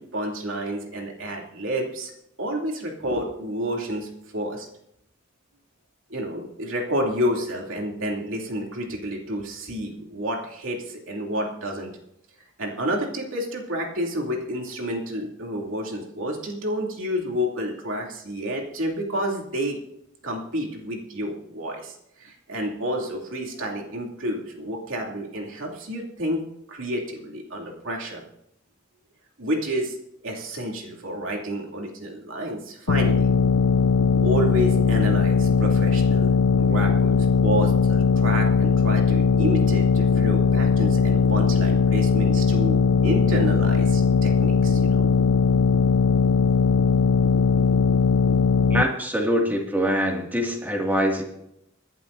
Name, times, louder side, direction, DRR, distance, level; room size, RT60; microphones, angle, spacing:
voice 1, 0.0-2.1 2.4-4.7 6.1-12.0 12.6-19.8 20.2-26.4 26.7-28.2 29.4-30.0 30.2-33.3 34.2-45.1, equal, 75° right, 0 dB, 2.9 m, -29 dB
sound 1, 32.9-48.8, left 5 dB, 75° left, 0.4 m, -19 dB
voice 2, 48.7-51.2, equal, 10° right, 0 dB, 2.3 m, -24 dB
25.0 x 11.5 x 2.7 m, 0.78 s
head